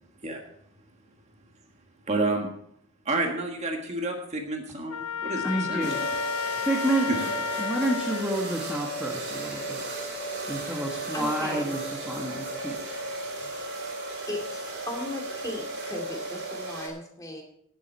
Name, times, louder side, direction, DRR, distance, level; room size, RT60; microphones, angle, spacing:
voice 1, 2.1-2.5 3.0-6.1 7.1-7.2, right 2 dB, 30° right, 2 dB, 1.6 m, -29 dB
Trumpet, 4.9-8.3, left 7 dB, 90° left, 0.8 m, -32 dB
voice 2, 5.4-6.1 6.6-7.1 7.6-9.8 10.5-13.0, right 1 dB, 5° right, 0 dB, 1.4 m, -29 dB
sound 1, 5.8-16.9, right 2 dB, 50° right, 3.9 m, -35 dB
voice 3, 11.1-11.7 14.3-17.4, left 1 dB, 15° left, 2 dB, 2.5 m, -36 dB
18.5 x 7.1 x 4.5 m, 0.71 s
head